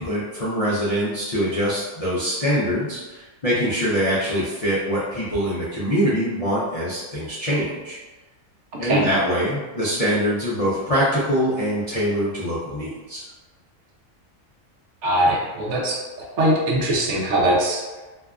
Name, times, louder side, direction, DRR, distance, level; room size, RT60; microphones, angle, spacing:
voice 1, 0.0-8.0 8.8-13.2, equal, 75° left, -9 dB, 0.3 m, -24 dB
voice 2, 15.0-17.8, right 1 dB, 65° right, -2 dB, 0.8 m, -21 dB
2.6 x 2.3 x 2.3 m, 1.2 s
omnidirectional pair, 1.4 m